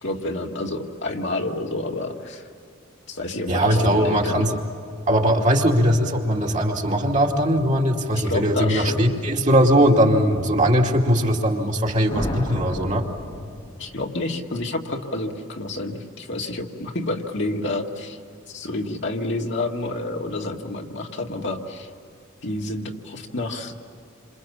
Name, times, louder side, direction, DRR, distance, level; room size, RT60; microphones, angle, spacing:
voice 1, 0.0-2.4 3.1-4.4 8.2-9.1 13.8-18.2 18.5-21.9 22.4-23.7, left 2 dB, 60° left, 1 dB, 2.0 m, -29 dB
voice 2, 3.5-4.6 5.1-13.0, equal, 35° right, 0 dB, 2.5 m, -20 dB
sound 1, 12.1-14.1, left 1 dB, 25° left, 1.5 m, -32 dB
29.0 x 26.5 x 7.3 m, 2.4 s
head